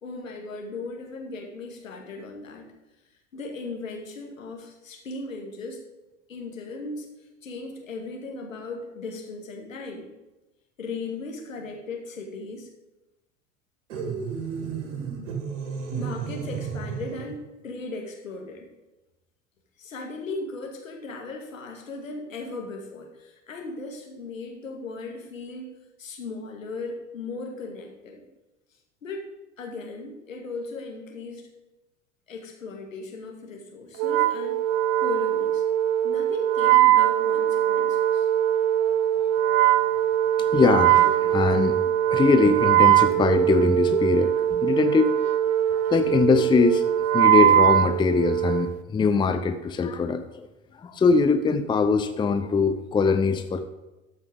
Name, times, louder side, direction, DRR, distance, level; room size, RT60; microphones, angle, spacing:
voice 1, 0.0-2.7 3.3-5.8 6.3-7.1 7.4-10.1 10.8-12.7 15.9-18.7 19.8-25.7 26.0-28.3 29.0-29.3 29.6-31.4 32.3-34.6 35.0-35.6 36.0-38.3, left 3 dB, 80° left, 1 dB, 2.2 m, -37 dB
sound 1, 13.9-17.4, right 6 dB, 65° right, 2.3 m, -32 dB
Wind instrument woodwind instrument, 34.0-48.7, right 11 dB, 40° right, 0.5 m, -21 dB
voice 2, 40.5-45.1 45.9-46.8 47.1-50.5 50.8-53.7, left 4 dB, 10° left, 9 dB, 0.6 m, -22 dB
13.0 x 5.9 x 5.0 m, 1.0 s
figure-of-eight pair, 80°, 39 cm